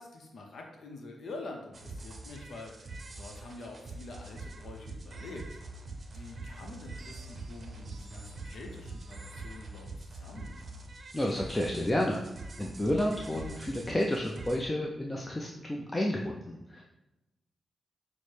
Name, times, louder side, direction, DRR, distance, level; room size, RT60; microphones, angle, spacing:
voice 1, 0.0-5.4 6.1-10.6, left 2 dB, 70° left, 1 dB, 0.6 m, -46 dB
sound 1, 1.7-14.6, right 2 dB, 50° right, 0.6 m, -44 dB
voice 2, 11.1-12.2 12.6-16.8, left 1 dB, 20° left, -1 dB, 0.5 m, -31 dB
6.0 x 2.0 x 3.3 m, 0.98 s
supercardioid pair, 50°, 0 cm